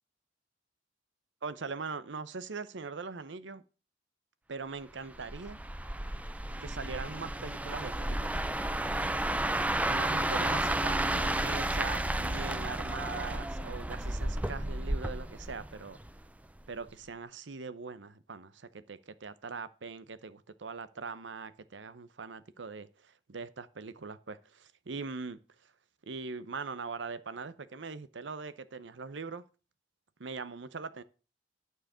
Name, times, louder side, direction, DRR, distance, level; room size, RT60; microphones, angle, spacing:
voice 1, 1.4-3.6 4.5-5.6 6.6-8.5 9.9-16.0 16.7-25.4 26.1-29.4 30.2-31.0, right 4 dB, 85° right, 0.8 m, -41 dB
sound 1, 5.1-16.3 16.6-16.9, right 1 dB, 10° right, 0.5 m, -32 dB
11.5 x 4.8 x 6.2 m
head